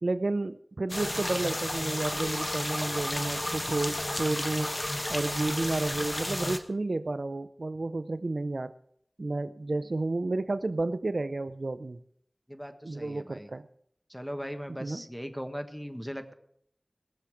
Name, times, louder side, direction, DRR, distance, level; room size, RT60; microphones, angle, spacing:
voice 1, 0.0-4.7 5.1-8.7 9.2-12.0 12.8-13.7 14.8-15.0, right 2 dB, 70° right, 13 dB, 0.5 m, -31 dB
sound 1, 0.9-6.6, left 1 dB, 30° left, 1.2 m, -32 dB
voice 2, 12.5-13.5 14.1-16.3, equal, ahead, 7 dB, 1.4 m, -39 dB
19.0 x 7.1 x 6.3 m, 0.68 s
wide cardioid pair, 50°, 0 cm